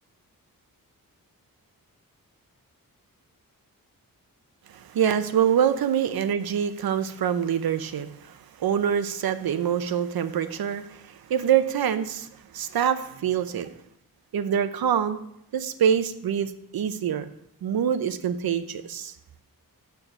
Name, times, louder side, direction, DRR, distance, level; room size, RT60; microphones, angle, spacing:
voice 1, 4.7-12.2 12.5-13.7 14.3-15.2 15.5-17.3 17.6-19.1, right 8 dB, 80° right, 11 dB, 0.7 m, -25 dB
7.0 x 6.6 x 5.9 m, 0.75 s
wide cardioid pair, 150°, 35 cm